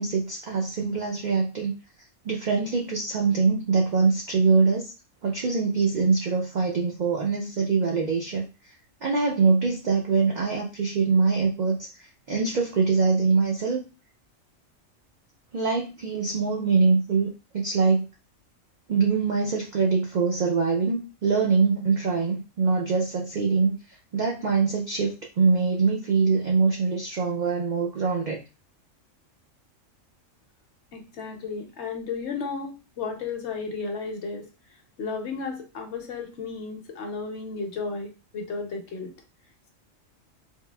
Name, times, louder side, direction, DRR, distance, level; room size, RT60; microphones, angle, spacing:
voice 1, 0.0-1.7 2.2-4.9 5.2-8.4 9.0-13.8 15.5-18.0 18.9-23.8 24.1-28.4, right 4 dB, 85° right, -1 dB, 0.4 m, -23 dB
voice 2, 30.9-34.5 35.0-39.1, left 4 dB, 65° left, 3 dB, 0.9 m, -33 dB
3.4 x 2.4 x 2.2 m, 0.31 s
omnidirectional pair, 1.4 m